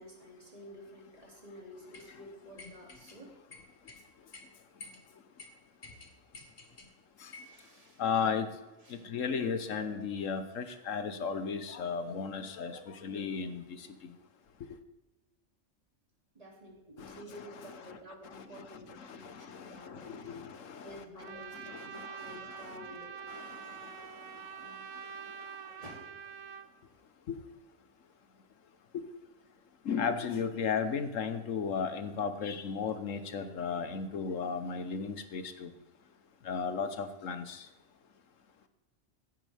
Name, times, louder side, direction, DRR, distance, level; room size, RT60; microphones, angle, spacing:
voice 1, 0.0-3.4 5.9-6.0 7.2-8.0 8.8-9.0 16.3-20.3 20.8-23.2 25.8-26.1 26.9-27.0, equal, 30° right, -1 dB, 2.7 m, -51 dB
sound 1, 1.9-2.1 2.6-3.2 3.5-4.0 4.3-4.5 4.8-5.0 5.4-5.5 5.8-6.9 7.3-7.6, left 3 dB, 40° left, 1.5 m, -50 dB
voice 2, 8.0-8.5 8.9-14.1 17.0-17.2 17.9-18.0 18.3-18.7 19.0-20.9 21.5-22.8 23.3-24.1 27.3-27.4 28.9-29.0 29.8-35.7 36.4-37.7, left 6 dB, 80° left, 10 dB, 1.4 m, -35 dB
Trumpet, 21.2-26.7, right 7 dB, 80° right, 1.1 m, -45 dB
15.5 x 10.0 x 3.4 m, 1.1 s
omnidirectional pair, 1.3 m